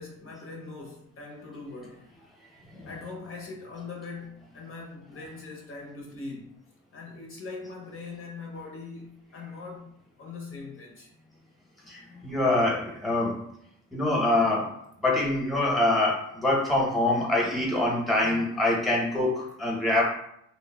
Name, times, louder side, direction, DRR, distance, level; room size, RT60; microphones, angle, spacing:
voice 1, 0.0-2.1 2.8-6.6 6.9-9.9 10.2-11.1, left 3 dB, 45° left, -1 dB, 0.6 m, -41 dB
voice 2, 11.9-13.5 13.9-20.1, left 2 dB, ahead, -3 dB, 0.9 m, -25 dB
2.8 x 2.3 x 2.2 m, 0.72 s
cardioid pair, 90°, 30 cm